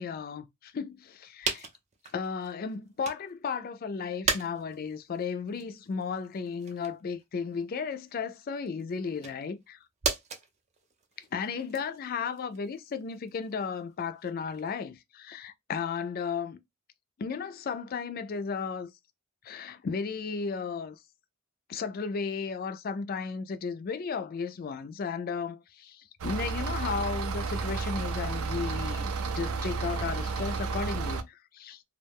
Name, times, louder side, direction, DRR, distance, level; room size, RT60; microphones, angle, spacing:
voice 1, 0.0-1.7 2.1-9.8 11.3-16.6 17.2-18.9 19.4-21.0 21.7-31.8, left 5 dB, 45° left, 0.3 m, -34 dB
sound 1, 0.9-1.0 1.4-3.4 3.7-14.8, right 5 dB, 30° right, 0.5 m, -38 dB
sound 2, 26.2-31.2, right 4 dB, 90° right, 0.5 m, -32 dB
2.3 x 2.1 x 3.4 m
head